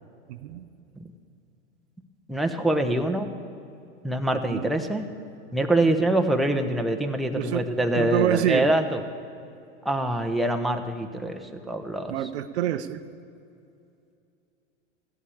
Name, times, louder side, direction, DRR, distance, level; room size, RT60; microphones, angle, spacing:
voice 1, 0.3-0.7 4.5-4.7 7.3-7.6 7.9-8.7 12.1-13.0, right 12 dB, 65° right, 12 dB, 0.7 m, -26 dB
voice 2, 2.3-3.3 4.0-5.0 5.5-9.0 9.8-11.4 11.7-12.1, right 1 dB, ahead, 3 dB, 0.9 m, -24 dB
14.5 x 8.3 x 8.6 m, 2.5 s
hypercardioid pair, 105°, 36 cm